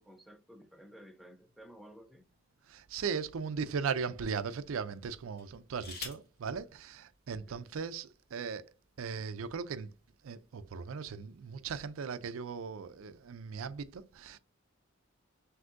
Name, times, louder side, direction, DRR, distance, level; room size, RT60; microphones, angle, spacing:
voice 1, 0.0-2.2 7.3-7.7, equal, ahead, 0.5 m, -54 dB
sound 1, 1.6-2.8 3.5-3.7 5.3-6.4 7.5-7.6 7.9-8.3, left 4 dB, 50° left, 1.3 m, -47 dB
voice 2, 2.7-8.6 9.0-9.9 10.2-14.4, right 6 dB, 85° right, 0.4 m, -38 dB
6.0 x 2.7 x 2.5 m
head